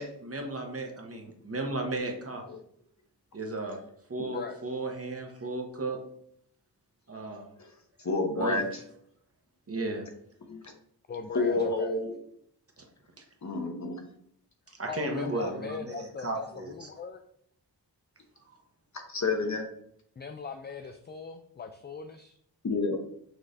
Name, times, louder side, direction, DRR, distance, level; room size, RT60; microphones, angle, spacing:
voice 1, 0.0-2.5 3.3-3.8 4.1-6.0 7.1-7.5 8.4-8.6 9.7-10.1 12.8-12.9 14.7-16.9, right 2 dB, 35° right, 3 dB, 1.0 m, -34 dB
voice 2, 8.0-8.6 10.5-10.6 11.3-12.1 13.4-14.0 19.1-19.7 22.6-23.0, left 3 dB, 45° left, 3 dB, 1.0 m, -29 dB
voice 3, 11.1-11.9 14.9-17.2 20.2-22.4, left 5 dB, 30° left, 6 dB, 0.3 m, -40 dB
6.2 x 3.1 x 2.6 m, 0.68 s
wide cardioid pair, 65°, 40 cm